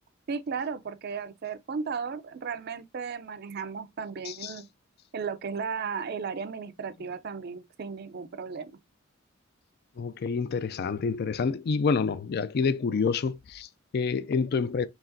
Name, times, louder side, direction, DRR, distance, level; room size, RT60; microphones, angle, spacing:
voice 1, 0.3-4.7 5.1-8.8, right 5 dB, 50° right, 0.4 m, -35 dB
voice 2, 4.3-4.6 10.0-14.9, left 5 dB, 50° left, 0.3 m, -28 dB
4.8 x 3.3 x 2.6 m
head